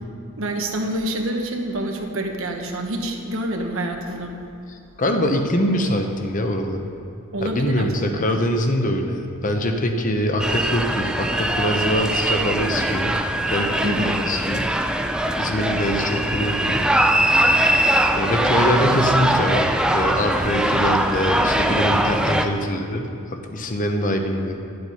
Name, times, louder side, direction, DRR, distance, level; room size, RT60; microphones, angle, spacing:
voice 1, 0.4-4.4 7.3-8.2 13.8-14.2, right 1 dB, 65° right, 3 dB, 1.1 m, -27 dB
voice 2, 4.7-6.9 7.4-13.2 13.5-14.7 15.4-16.9 18.2-24.6, equal, 35° left, 5 dB, 0.9 m, -23 dB
sound 1, 10.4-22.5, right 1 dB, 5° right, 0.3 m, -21 dB
11.0 x 7.9 x 5.5 m, 2.5 s
head